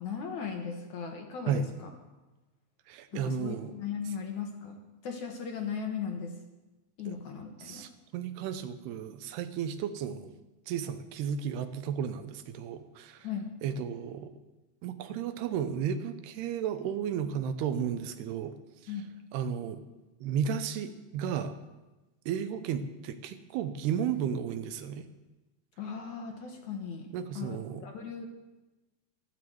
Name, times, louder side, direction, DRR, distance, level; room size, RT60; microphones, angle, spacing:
voice 1, 0.0-1.9 3.1-6.3 7.0-7.8 13.2-13.5 18.9-19.1 25.8-28.3, left 6 dB, 60° left, 3 dB, 2.4 m, -37 dB
voice 2, 2.9-3.7 7.1-7.2 7.6-10.3 10.7-13.3 13.6-14.3 14.8-18.5 18.8-19.0 19.3-19.8 20.2-21.6 22.3-25.1 27.1-27.8, right 8 dB, 90° right, 10 dB, 3.0 m, -33 dB
12.5 x 11.5 x 7.8 m, 1.1 s
omnidirectional pair, 4.5 m